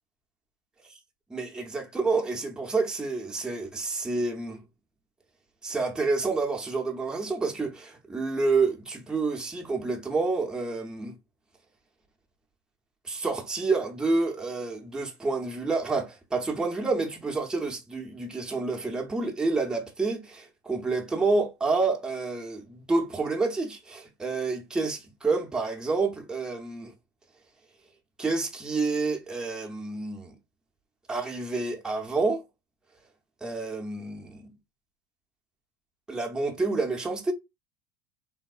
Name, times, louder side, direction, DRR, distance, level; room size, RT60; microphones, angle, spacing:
voice 1, 1.3-4.6 5.6-11.1 13.0-26.9 28.2-30.3 31.1-32.4 33.4-34.5 36.1-37.3, right 3 dB, 5° right, 0.6 m, -28 dB
3.3 x 2.0 x 2.3 m
supercardioid pair, 145°, 11 cm